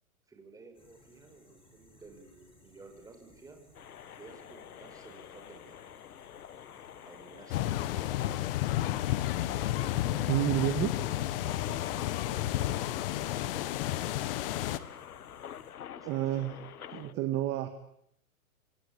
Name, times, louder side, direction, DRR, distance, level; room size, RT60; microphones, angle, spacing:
voice 1, 0.3-3.6 4.2-5.7 7.0-8.4 9.6-14.9 15.9-17.3, right 3 dB, 10° right, 5 dB, 5.0 m, -54 dB
sound 1, 0.7-15.7, left 1 dB, 10° left, 7.0 m, -62 dB
sound 2, 3.7-17.1, left 10 dB, 80° left, 1.5 m, -46 dB
sound 3, 7.5-14.8, left 14 dB, 40° left, 1.6 m, -31 dB
voice 2, 10.3-10.9 16.0-16.5 16.9-17.7, right 14 dB, 25° right, 9 dB, 1.8 m, -29 dB
27.0 x 23.5 x 8.7 m, 0.74 s
hypercardioid pair, 150°, 43 cm